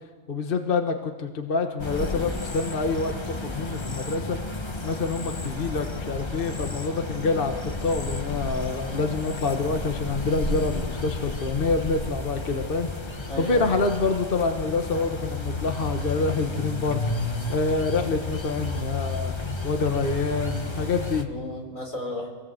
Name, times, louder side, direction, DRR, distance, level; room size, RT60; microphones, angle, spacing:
voice 1, 0.3-4.4 4.8-19.3 19.6-21.3, left 3 dB, 45° left, 6 dB, 1.4 m, -27 dB
sound 1, 1.8-21.2, left 2 dB, 20° left, 1.2 m, -32 dB
voice 2, 2.1-2.4 5.1-5.3 13.3-13.8 21.3-22.3, left 1 dB, 90° left, 1 dB, 4.8 m, -34 dB
25.0 x 18.0 x 7.8 m, 1.4 s
omnidirectional pair, 1.3 m